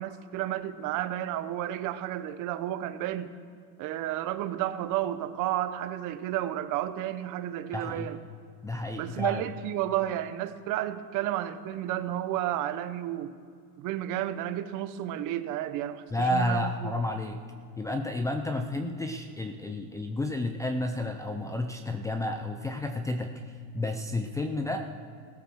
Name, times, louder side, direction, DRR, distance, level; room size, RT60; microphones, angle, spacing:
voice 1, 0.0-3.3 3.8-8.2 9.0-13.3 13.8-16.0 16.3-16.9, right 12 dB, 45° right, 11 dB, 1.0 m, -32 dB
voice 2, 7.7-8.1 8.6-9.4 16.1-17.4 17.8-24.8, left 1 dB, 5° left, 6 dB, 0.6 m, -31 dB
16.5 x 13.0 x 6.4 m, 2.3 s
supercardioid pair, 140°, 44 cm